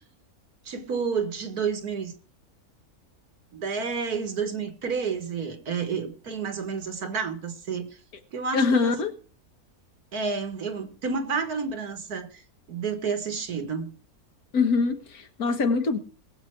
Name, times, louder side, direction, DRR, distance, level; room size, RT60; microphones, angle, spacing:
voice 1, 0.7-2.1 3.5-7.9 8.3-8.9 10.1-12.4 12.7-13.9, right 5 dB, 80° right, 2.2 m, -30 dB
voice 2, 8.5-9.1 14.5-16.0, left 4 dB, 80° left, 2.0 m, -23 dB
21.0 x 7.7 x 4.6 m
omnidirectional pair, 1.6 m